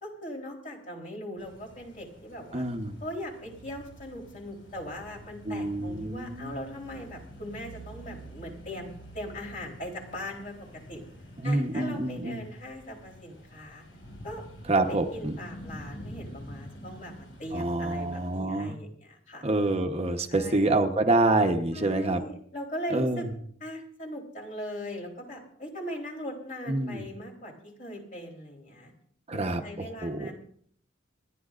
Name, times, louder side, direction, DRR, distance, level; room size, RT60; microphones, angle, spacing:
voice 1, 0.0-2.7 3.0-8.9 9.1-10.5 10.9-11.0 11.4-13.8 14.2-14.4 14.8-19.4 20.3-20.8 21.7-23.3 23.6-27.5 27.8-28.9 29.3-30.3, equal, 45° left, 0 dB, 3.5 m, -40 dB
sound 1, 1.4-18.4, equal, 90° left, 5.7 m, -47 dB
voice 2, 2.5-3.0 5.5-6.6 11.4-12.4 14.7-15.3 17.5-18.8 19.4-22.2 22.9-23.3 26.7-27.1 29.3-30.3, right 2 dB, 35° right, 5 dB, 0.9 m, -27 dB
28.0 x 11.0 x 2.5 m, 0.62 s
head